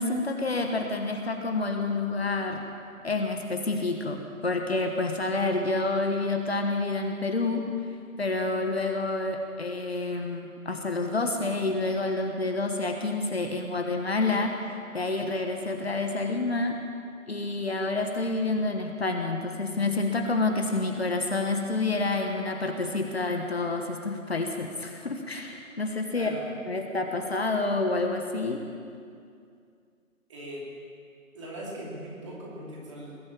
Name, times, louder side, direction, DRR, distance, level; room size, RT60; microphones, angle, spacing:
voice 1, 0.0-2.6 3.0-7.7 8.2-16.8 17.3-26.3 26.7-28.6, left 3 dB, 45° left, 4 dB, 1.3 m, -28 dB
voice 2, 26.1-26.5 30.3-30.7 31.3-33.2, equal, 20° right, -4 dB, 2.9 m, -40 dB
20.0 x 7.8 x 8.7 m, 2.3 s
figure-of-eight pair, 160°, 42 cm